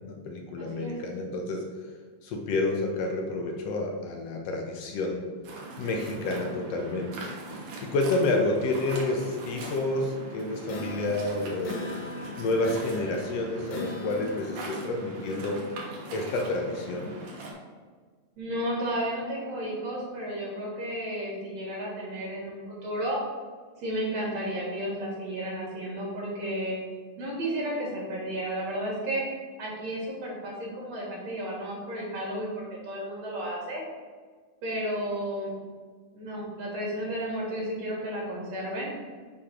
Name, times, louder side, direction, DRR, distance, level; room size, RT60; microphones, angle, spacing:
voice 1, 0.0-1.9 2.2-5.3 5.8-7.1 7.8-12.0 12.4-15.6 16.1-17.1, left 2 dB, 70° left, 2 dB, 1.6 m, -29 dB
voice 2, 0.6-1.0 18.4-23.2 23.8-26.8 27.2-29.2 29.6-33.8 34.6-35.5 36.1-38.9, right 1 dB, 60° right, -3 dB, 2.7 m, -33 dB
Waves surf, 5.4-17.5, right 2 dB, 90° right, 2.6 m, -41 dB
sound 1, 10.6-14.9, left 3 dB, 90° left, 2.4 m, -40 dB
6.6 x 3.6 x 5.8 m, 1.5 s
omnidirectional pair, 3.3 m